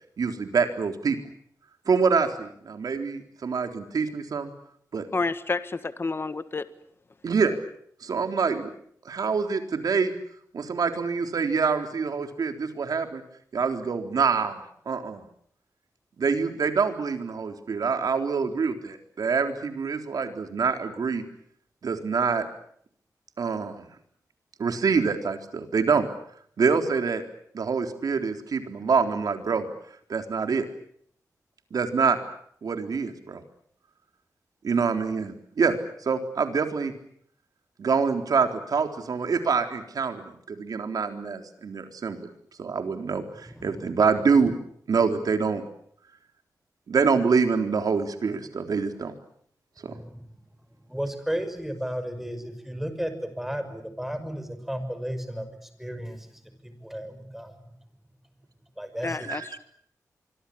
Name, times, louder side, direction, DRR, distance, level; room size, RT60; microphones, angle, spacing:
voice 1, 0.2-1.2 1.9-4.5 4.9-5.1 7.2-7.6 8.0-8.7 9.0-10.1 10.5-13.2 13.5-15.2 16.2-21.2 21.8-22.5 23.4-23.9 24.6-26.1 26.6-27.2 27.5-29.7 30.1-30.7 31.7-32.2 32.6-33.4 34.6-36.9 37.8-42.3 42.6-44.5 44.9-45.6 46.9-49.1 49.8-49.9 59.3-59.6, right 5 dB, 75° right, 6 dB, 3.8 m, -25 dB
voice 2, 5.1-6.7 59.0-59.6, left 3 dB, 35° left, 12 dB, 1.6 m, -29 dB
voice 3, 43.4-43.8 49.9-50.3 50.9-57.6 58.8-59.3, equal, 5° right, 9 dB, 5.8 m, -34 dB
25.5 x 24.5 x 8.6 m, 0.67 s
wide cardioid pair, 95°, 6 cm